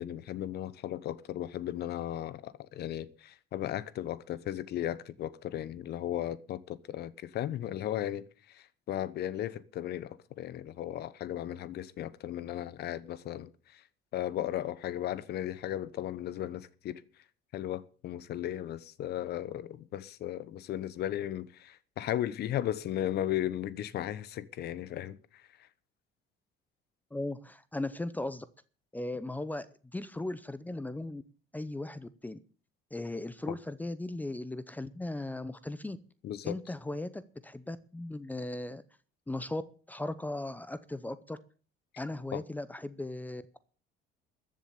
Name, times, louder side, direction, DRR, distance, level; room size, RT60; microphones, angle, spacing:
voice 1, 0.0-13.8 14.1-17.0 17.5-25.2 33.5-33.6 36.2-36.6 42.3-42.4, left 12 dB, 55° left, 1.0 m, -36 dB
voice 2, 27.1-28.5 28.9-29.7 29.9-31.2 31.5-32.4 32.9-36.0 36.4-38.8 39.3-39.6 39.9-41.4 42.0-43.6, left 2 dB, 10° left, 0.7 m, -37 dB
14.5 x 7.4 x 8.7 m
cardioid pair, 150°, 20 cm